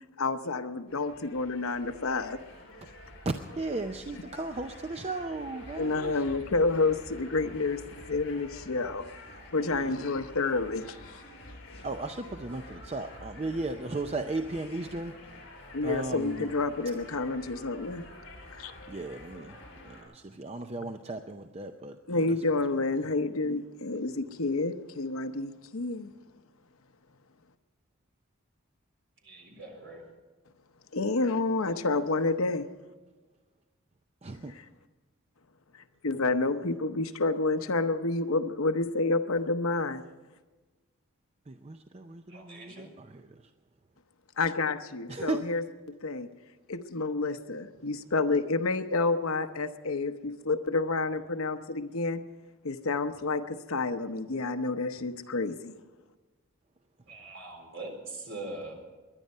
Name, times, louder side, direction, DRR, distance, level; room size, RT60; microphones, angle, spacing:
voice 1, 0.2-2.4 4.3-4.4 5.7-9.1 9.5-11.2 15.7-18.0 18.5-18.7 20.8-20.9 22.1-26.1 30.9-32.7 34.5-34.7 36.0-40.0 44.4-46.3 46.7-52.2 52.6-55.8, left 3 dB, 75° left, 9 dB, 0.9 m, -29 dB
sound 1, 0.9-20.0, left 1 dB, 55° left, 4.8 m, -48 dB
voice 2, 3.6-6.2 9.7-9.9 11.8-15.1 15.8-16.5 18.9-19.6 19.8-22.0 34.2-34.5 41.5-43.3 45.1-45.4, right 2 dB, 30° right, 7 dB, 0.5 m, -36 dB
voice 3, 29.2-30.0 42.3-42.9 57.1-58.7, right 2 dB, 60° right, 1 dB, 4.1 m, -42 dB
22.0 x 10.5 x 5.5 m, 1.3 s
head